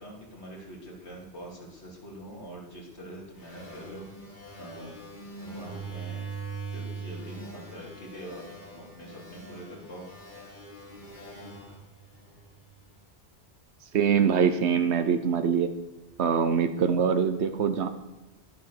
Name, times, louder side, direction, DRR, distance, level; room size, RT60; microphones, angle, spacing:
voice 1, 0.0-4.3 4.5-5.0 5.4-6.3 6.7-10.1, right 1 dB, 80° left, -2 dB, 3.8 m, -44 dB
sound 1, 3.4-12.8, right 4 dB, 45° left, 2.8 m, -42 dB
voice 2, 13.9-15.7 16.2-17.9, right 7 dB, 80° right, 8 dB, 1.2 m, -24 dB
11.5 x 11.5 x 6.6 m, 1.0 s
omnidirectional pair, 1.1 m